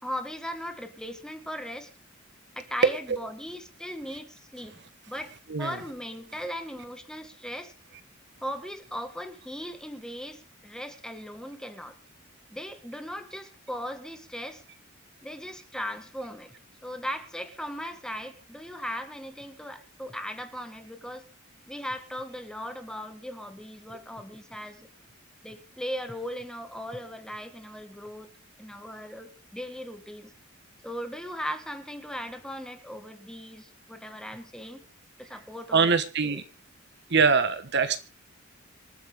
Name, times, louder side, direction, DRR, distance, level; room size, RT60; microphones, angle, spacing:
voice 1, 0.0-1.9 2.5-4.8 5.1-7.7 8.4-12.0 12.5-14.6 15.2-16.5 16.8-21.3 21.7-24.9 25.4-28.3 28.6-30.3 30.8-34.8 35.2-35.9 36.2-36.4, equal, 5° left, 7 dB, 1.7 m, -38 dB
voice 2, 2.8-3.2 5.5-5.8 35.7-36.4 37.1-38.0, right 5 dB, 55° right, 11 dB, 1.3 m, -23 dB
26.5 x 9.1 x 3.7 m, 0.32 s
head